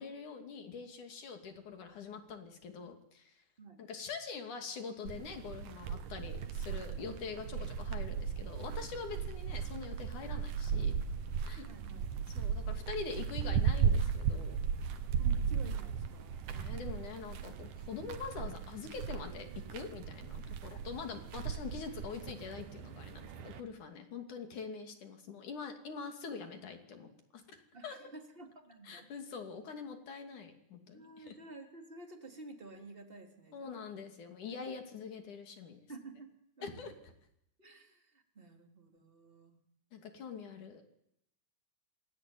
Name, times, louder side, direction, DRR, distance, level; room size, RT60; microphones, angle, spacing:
voice 1, 0.0-3.4 3.8-10.9 11.4-11.7 12.4-14.6 16.5-27.4 27.8-28.0 28.8-31.4 33.5-35.8 36.6-37.1 39.9-40.8, left 5 dB, 60° left, 5 dB, 4.1 m, -44 dB
sound 1, 5.1-23.6, right 7 dB, 70° right, 3.1 m, -36 dB
voice 2, 11.7-12.1 12.7-12.8 15.2-16.5 27.7-29.1 30.9-33.7 34.5-34.6 35.9-36.3 36.6-36.8 37.6-38.0 38.3-39.6, right 3 dB, 15° right, 3 dB, 3.4 m, -51 dB
28.0 x 20.0 x 9.3 m, 0.81 s
omnidirectional pair, 4.0 m